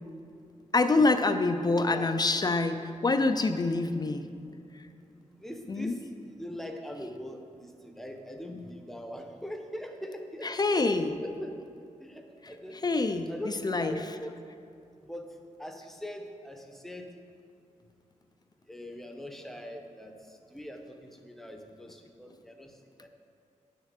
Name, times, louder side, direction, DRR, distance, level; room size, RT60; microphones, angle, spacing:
voice 1, 0.7-4.3 5.7-5.9 10.4-11.2 12.4-14.0, left 3 dB, 30° left, 8 dB, 0.4 m, -26 dB
voice 2, 5.4-6.0 6.3-10.9 11.2-11.6 12.0-12.8 13.3-14.3 15.0-15.2 15.6-17.1 18.7-20.1 20.5-22.7 23.0-23.1, equal, ahead, 4 dB, 0.8 m, -41 dB
10.0 x 6.5 x 6.6 m, 2.5 s
wide cardioid pair, 175°, 13 cm